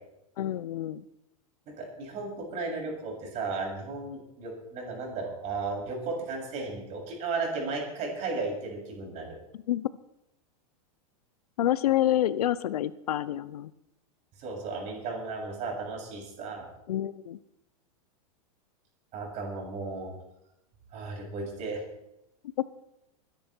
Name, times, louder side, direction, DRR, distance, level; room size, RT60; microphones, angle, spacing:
voice 1, 0.4-1.0 9.5-9.9 11.6-13.7 16.9-17.4 22.6-22.7, left 12 dB, 85° left, 17 dB, 0.7 m, -28 dB
voice 2, 1.7-9.3 14.4-16.7 19.1-20.1 20.9-21.8, right 3 dB, 35° right, -1 dB, 7.4 m, -35 dB
23.5 x 10.5 x 4.6 m, 0.87 s
supercardioid pair, 130°, 19 cm